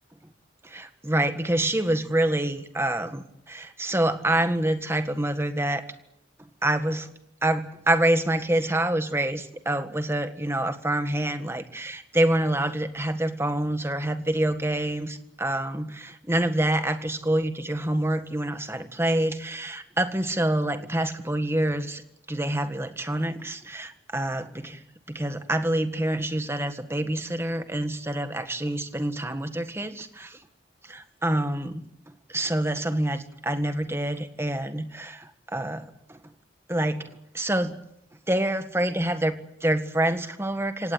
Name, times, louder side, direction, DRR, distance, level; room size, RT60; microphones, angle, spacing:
voice 1, 0.6-5.8 6.6-7.1 7.4-22.0 22.3-24.8 25.1-30.4 30.8-31.8 32.3-36.2 36.7-37.8 38.3-40.9, right 1 dB, 15° right, 9 dB, 1.6 m, -27 dB
24.5 x 18.5 x 8.9 m, 0.76 s
head